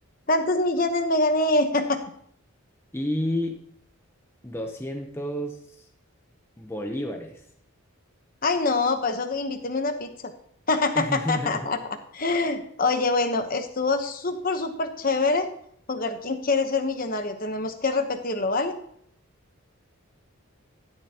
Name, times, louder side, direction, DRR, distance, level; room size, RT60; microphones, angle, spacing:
voice 1, 0.3-2.0 8.4-10.3 10.7-15.5 15.9-18.7, left 3 dB, 40° left, 7 dB, 1.0 m, -25 dB
voice 2, 2.9-3.6 4.4-5.9 6.6-7.4 10.9-11.7, left 1 dB, 10° left, 3 dB, 0.7 m, -30 dB
12.0 x 10.5 x 2.9 m, 0.66 s
head